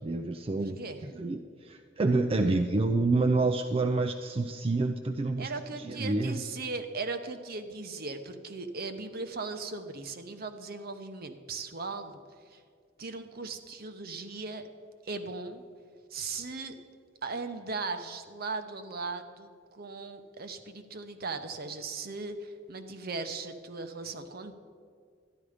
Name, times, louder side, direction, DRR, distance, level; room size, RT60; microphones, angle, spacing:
voice 1, 0.0-5.5 5.8-6.4, right 3 dB, 30° right, 6 dB, 0.4 m, -28 dB
voice 2, 0.6-1.0 5.4-12.2 12.5-12.6 13.0-14.7 15.0-15.6 16.1-16.7 17.2-24.5, right 3 dB, 55° right, 8 dB, 0.9 m, -38 dB
13.0 x 11.0 x 5.0 m, 2.2 s
head